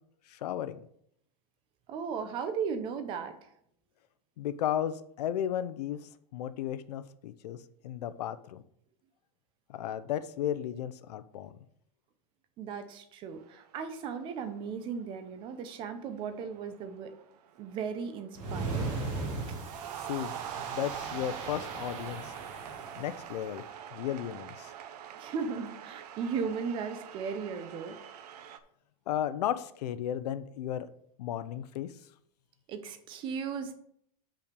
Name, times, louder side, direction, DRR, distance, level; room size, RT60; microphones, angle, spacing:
voice 1, 0.3-0.8 4.4-6.0 6.3-8.6 9.7-11.6 20.1-22.3 23.0-23.6 23.9-24.7 29.1-30.9 31.2-31.9, left 10 dB, 85° left, 14 dB, 0.7 m, -34 dB
voice 2, 1.9-3.5 12.6-17.1 17.6-18.8 25.2-28.0 32.7-33.7, right 6 dB, 25° right, 10 dB, 0.7 m, -36 dB
sound 1, 13.3-13.8 14.1-14.6 15.5-15.7 16.1-18.3 18.7-28.6, right 10 dB, 80° right, 0.9 m, -44 dB
sound 2, 18.3-23.3, right 3 dB, 55° right, 2.3 m, -38 dB
6.5 x 5.8 x 5.2 m, 0.68 s
supercardioid pair, 170°, 20 cm